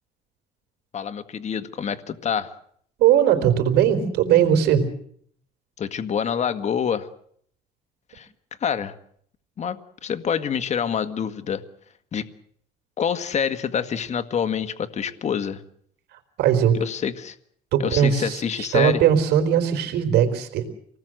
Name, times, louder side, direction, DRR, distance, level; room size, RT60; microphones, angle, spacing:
voice 1, 0.9-2.5 5.8-7.1 8.1-8.3 8.6-8.9 9.6-11.6 12.1-12.3 13.0-15.6 16.7-17.4 17.8-19.0, left 7 dB, 45° left, 11 dB, 1.7 m, -26 dB
voice 2, 3.0-4.8 16.4-16.8 17.7-20.7, right 9 dB, 80° right, 6 dB, 4.1 m, -19 dB
27.0 x 19.0 x 7.8 m, 0.65 s
cardioid pair, 110°, 17 cm